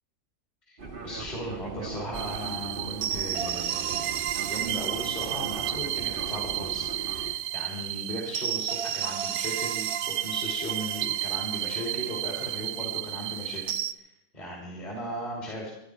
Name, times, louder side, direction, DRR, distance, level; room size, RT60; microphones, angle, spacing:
Fixed-wing aircraft airplane, 0.8-7.3, right 4 dB, 35° right, 1.4 m, -39 dB
voice 1, 1.0-14.1 14.3-15.7, equal, 25° left, -2 dB, 2.9 m, -37 dB
sound 1, 2.1-13.9, right 12 dB, 70° right, 1.1 m, -31 dB
23.0 x 11.0 x 4.9 m, 0.91 s
omnidirectional pair, 1.8 m